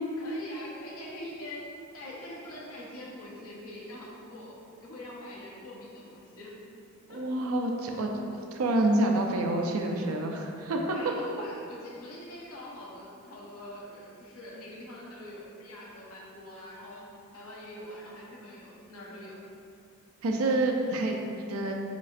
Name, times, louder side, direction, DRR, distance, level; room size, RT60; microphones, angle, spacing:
voice 1, 0.2-1.6 1.9-6.5 7.1-7.2 10.9-17.0 17.3-19.4, left 1 dB, 90° left, -5 dB, 1.0 m, -44 dB
voice 2, 7.1-11.0 20.2-21.7, right 1 dB, 80° right, 2 dB, 0.4 m, -28 dB
5.1 x 4.1 x 2.5 m, 2.5 s
head